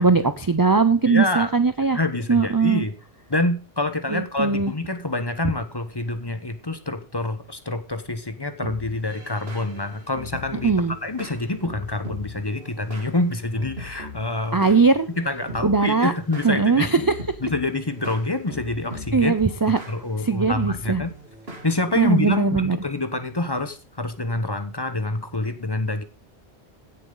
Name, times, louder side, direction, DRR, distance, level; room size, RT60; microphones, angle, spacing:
voice 1, 0.0-2.0 2.3-2.8 4.1-4.7 10.6-11.0 14.5-15.1 15.6-16.1 16.4-17.0 19.1-19.8 20.2-21.0 22.0-22.8, right 4 dB, 30° right, 11 dB, 0.4 m, -20 dB
voice 2, 1.1-1.5 1.9-2.9 3.3-10.7 11.0-14.6 15.2-16.9 17.4-19.4 19.7-21.1 21.6-26.0, left 2 dB, 25° left, 9 dB, 0.9 m, -26 dB
sound 1, 8.6-22.3, left 1 dB, 65° right, 2.9 m, -40 dB
16.5 x 7.1 x 3.9 m, 0.34 s
omnidirectional pair, 1.1 m